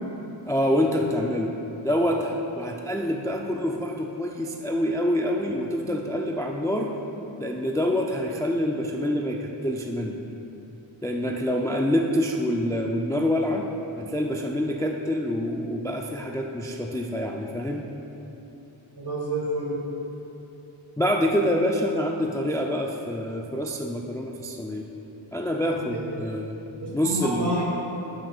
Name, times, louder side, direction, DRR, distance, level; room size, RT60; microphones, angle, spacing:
voice 1, 0.5-1.6 1.8-6.9 7.4-10.2 11.0-13.7 14.0-17.9 21.0-24.9 25.3-26.6 26.9-27.6, equal, 10° left, 1 dB, 0.3 m, -26 dB
voice 2, 19.0-19.7 25.9-26.0 26.8-27.8, right 1 dB, 50° right, -3 dB, 1.6 m, -28 dB
11.0 x 6.3 x 2.4 m, 3.0 s
wide cardioid pair, 60°, 49 cm